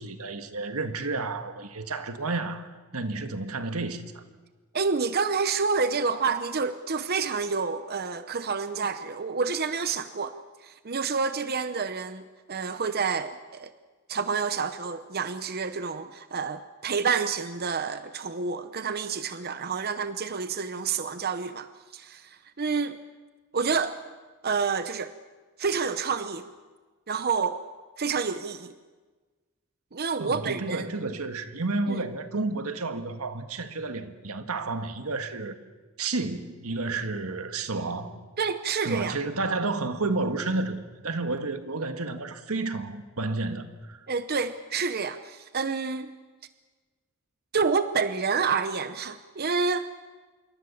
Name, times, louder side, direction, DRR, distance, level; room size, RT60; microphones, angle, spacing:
voice 1, 0.0-4.2 30.2-35.6 36.0-38.2 38.8-44.0, right 3 dB, 90° right, 1.8 m, -31 dB
voice 2, 4.7-10.4 10.6-12.2 12.5-13.7 14.1-23.0 23.5-24.0 24.4-25.1 25.6-26.5 27.1-27.6 28.0-28.7 29.9-30.9 31.9-32.0 38.4-39.2 44.1-46.1 47.5-49.9, right 5 dB, 45° right, 0.8 m, -28 dB
26.5 x 23.0 x 7.2 m
head